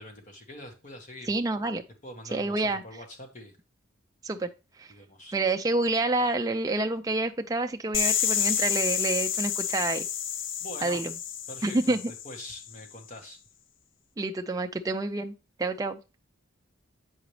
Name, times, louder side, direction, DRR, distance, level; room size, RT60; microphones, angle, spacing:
voice 1, 0.0-1.4 2.0-3.6 4.9-5.4 10.6-11.0 11.5-12.0 12.2-13.4, left 1 dB, 35° left, 1.4 m, -44 dB
voice 2, 1.3-1.8 2.3-2.8 4.2-4.5 4.8-4.9 5.3-10.1 10.8-11.1 11.6-12.1 14.2-16.0, right 2 dB, 15° right, 0.4 m, -28 dB
sound 1, 7.9-12.7, left 9 dB, 60° left, 0.5 m, -29 dB
8.1 x 4.9 x 3.2 m
head